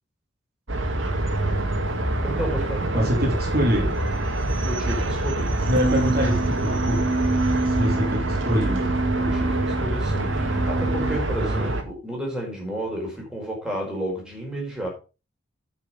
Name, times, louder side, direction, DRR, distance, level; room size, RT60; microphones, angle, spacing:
sound 1, 0.7-11.8, right 2 dB, 85° right, 1.8 m, -25 dB
voice 1, 2.2-3.1 4.6-5.7 9.2-14.9, right 1 dB, 5° right, 4.7 m, -32 dB
voice 2, 2.9-3.9 5.7-7.0 7.6-8.9 11.4-11.7, equal, 55° right, 2.7 m, -25 dB
sound 2, 5.8-11.2, right 2 dB, 25° right, 0.5 m, -27 dB
9.8 x 6.3 x 5.4 m
head